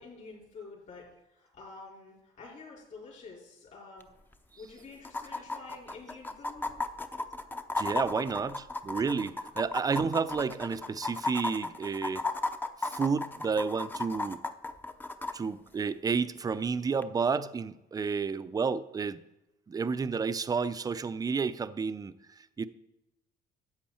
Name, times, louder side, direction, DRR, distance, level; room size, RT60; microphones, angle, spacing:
voice 1, 0.0-4.1 4.6-6.7, left 4 dB, 45° left, 4.8 m, -49 dB
sound 1, 4.0-4.1 4.3-4.4 5.0-15.3 17.0-17.1, left 2 dB, 10° left, 0.7 m, -34 dB
voice 2, 7.8-12.2 12.8-14.4 15.3-19.2 19.7-22.1 22.6-22.7, right 5 dB, 20° right, 0.5 m, -31 dB
13.0 x 8.4 x 4.4 m
cardioid pair, 110°, 17 cm